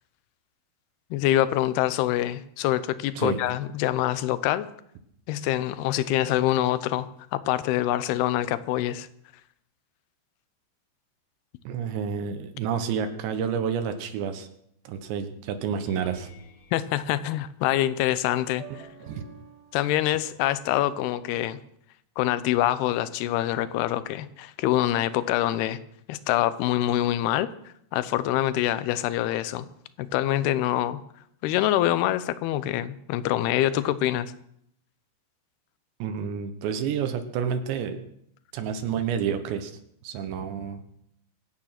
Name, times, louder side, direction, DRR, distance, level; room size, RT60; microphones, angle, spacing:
voice 1, 1.1-4.7 5.3-9.1 16.7-18.9 19.7-21.6 22.2-25.8 26.1-27.5 27.9-29.7 30.0-31.0 31.4-34.3, left 13 dB, 75° left, 15 dB, 2.6 m, -25 dB
voice 2, 11.7-14.5 14.9-16.3 19.1-19.2 36.0-38.0 38.5-39.7 40.0-40.8, right 7 dB, 80° right, 7 dB, 3.5 m, -29 dB
sound 1, 15.6-21.2, right 5 dB, 65° right, 3.4 m, -51 dB
sound 2, 15.8-18.1 18.8-19.2 19.6-19.8 24.1-24.2, left 3 dB, 55° left, 2.6 m, -52 dB
23.5 x 8.9 x 5.9 m, 0.72 s
omnidirectional pair, 5.1 m